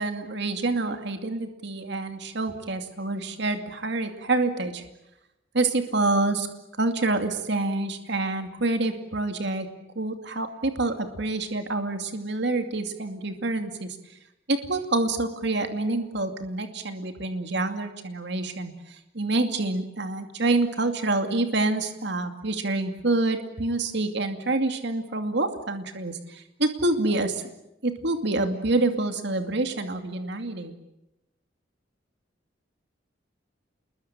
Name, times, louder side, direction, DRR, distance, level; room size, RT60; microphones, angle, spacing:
voice 1, 0.0-4.8 5.5-6.5 6.8-9.7 10.0-14.0 14.5-27.4 27.8-30.7, right 2 dB, 65° right, 7 dB, 2.5 m, -27 dB
28.0 x 22.0 x 9.0 m, 0.90 s
head